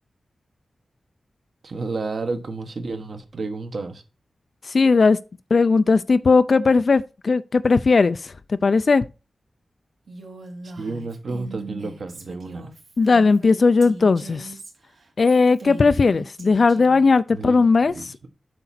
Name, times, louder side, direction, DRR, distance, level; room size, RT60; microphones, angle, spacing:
voice 1, 1.6-4.0 10.6-12.7 17.3-18.1, right 3 dB, 55° right, 1.2 m, -31 dB
voice 2, 4.7-5.2 5.5-8.3 8.6-9.0 13.0-14.5 15.2-17.9, left 4 dB, 45° left, 0.3 m, -17 dB
Female speech woman speaking, 10.1-17.1, right 3 dB, 70° right, 2.5 m, -40 dB
7.8 x 6.0 x 4.2 m
wide cardioid pair, 175°, 0 cm